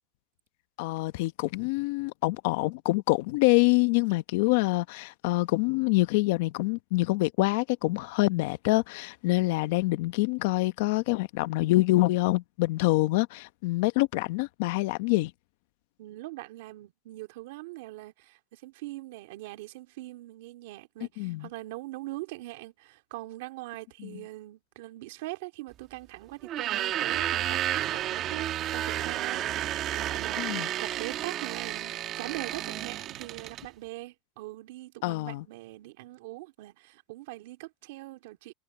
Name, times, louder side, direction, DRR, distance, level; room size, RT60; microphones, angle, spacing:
voice 1, 0.8-15.3 21.2-21.5 24.0-24.2 30.4-30.7 35.0-35.4, left 21 dB, 70° left, 0.9 m, -26 dB
voice 2, 16.0-27.6 27.9-38.5, right 19 dB, 80° right, 2.5 m, -42 dB
sound 1, 26.4-33.7, right 12 dB, 40° right, 1.5 m, -31 dB
supercardioid pair, 145°, 0 cm